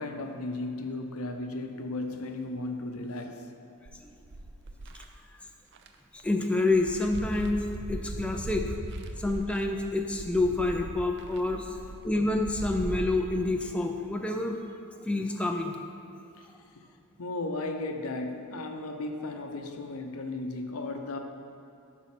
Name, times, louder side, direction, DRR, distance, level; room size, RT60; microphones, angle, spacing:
voice 1, 0.0-3.6 8.6-8.7 9.1-9.2 16.4-16.5 17.2-21.2, left 2 dB, 75° left, 5 dB, 0.8 m, -35 dB
sound 1, 3.9-5.0 5.7-5.9 6.2-13.1, right 2 dB, 50° right, 0.6 m, -39 dB
voice 2, 6.1-8.7 9.2-11.8 12.0-14.6 15.1-15.8, left 2 dB, 5° left, 2 dB, 0.4 m, -28 dB
11.0 x 4.2 x 5.8 m, 2.7 s
head